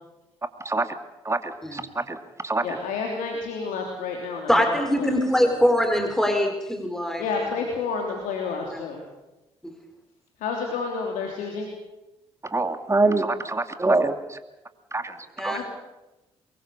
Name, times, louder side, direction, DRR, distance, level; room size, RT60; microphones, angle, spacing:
voice 1, 0.6-1.0 1.2-2.2 2.4-2.8 12.4-14.4 14.9-15.6, right 2 dB, 20° right, 9 dB, 2.4 m, -25 dB
voice 2, 2.6-5.1 5.4-5.5 7.2-9.0 10.4-11.7 15.5-15.7, left 5 dB, 70° left, 1 dB, 3.2 m, -30 dB
voice 3, 4.5-7.2 8.7-8.8 9.6-9.7 15.4-15.7, equal, 5° left, 5 dB, 4.5 m, -23 dB
24.0 x 22.0 x 6.8 m, 1.0 s
hypercardioid pair, 45°, 14 cm